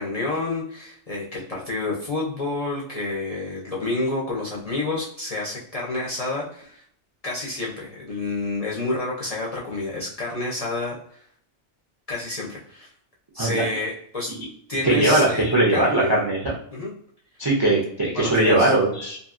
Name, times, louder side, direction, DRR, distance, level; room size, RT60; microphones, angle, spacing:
voice 1, 0.0-6.8 7.2-11.2 12.1-12.9 13.3-14.3 14.7-16.2 16.7-16.9 18.1-18.7, left 2 dB, 40° left, -5 dB, 0.5 m, -29 dB
voice 2, 14.8-16.5 17.4-19.2, right 2 dB, 35° right, -3 dB, 0.4 m, -20 dB
2.7 x 2.6 x 2.4 m, 0.65 s
omnidirectional pair, 1.2 m